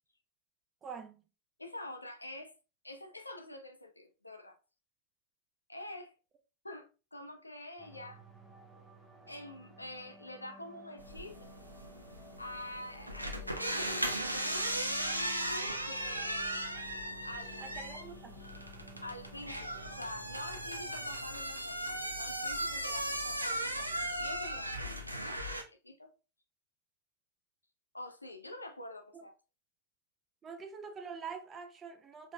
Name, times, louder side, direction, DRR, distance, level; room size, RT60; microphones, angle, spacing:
voice 1, 0.8-1.3 17.6-18.4 29.1-29.2 30.4-32.3, right 6 dB, 20° right, 0.7 m, -45 dB
voice 2, 1.6-2.5 2.8-4.6 5.7-6.1 6.6-8.2 9.3-11.5 12.4-13.7 15.4-16.7 17.2-17.8 19.0-26.1 27.9-29.4, left 1 dB, 85° left, 0.6 m, -46 dB
sound 1, 7.8-21.4, right 1 dB, 5° left, 1.0 m, -55 dB
sound 2, 11.0-25.6, right 1 dB, 85° right, 0.6 m, -37 dB
5.0 x 3.6 x 2.2 m
figure-of-eight pair, 90°, 0 cm